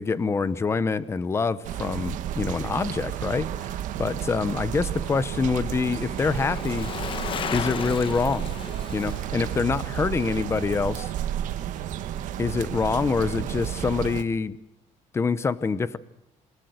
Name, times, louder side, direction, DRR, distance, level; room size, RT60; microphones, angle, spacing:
voice 1, 0.0-6.9 7.5-8.5 8.9-11.1 12.4-14.6 15.1-16.0, left 4 dB, 20° left, 16 dB, 0.8 m, -26 dB
sound 1, 1.6-14.2, right 11 dB, 80° right, 1.4 m, -32 dB
Bicycle, 3.5-11.9 12.2-12.3, left 8 dB, 40° left, 1.1 m, -38 dB
27.5 x 16.0 x 8.0 m, 0.83 s
cardioid pair, 165°, 13 cm